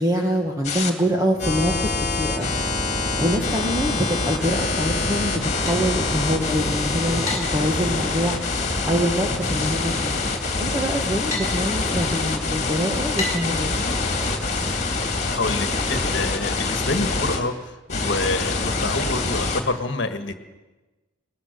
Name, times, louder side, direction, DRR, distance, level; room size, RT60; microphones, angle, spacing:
voice 1, 0.0-2.6 3.2-8.4 8.9-10.2 10.6-13.7, equal, 15° right, 1 dB, 1.4 m, -25 dB
sound 1, 0.6-0.9 1.4-17.4 17.9-19.6, left 3 dB, 35° left, 2.4 m, -25 dB
sound 2, 5.1-16.7, left 2 dB, 15° left, 4.5 m, -38 dB
sound 3, 7.0-13.0 17.7-17.8, left 2 dB, 35° right, 7.7 m, -44 dB
voice 2, 15.3-20.3, left 2 dB, 60° left, 8 dB, 1.5 m, -27 dB
20.5 x 19.5 x 6.7 m, 1.2 s
head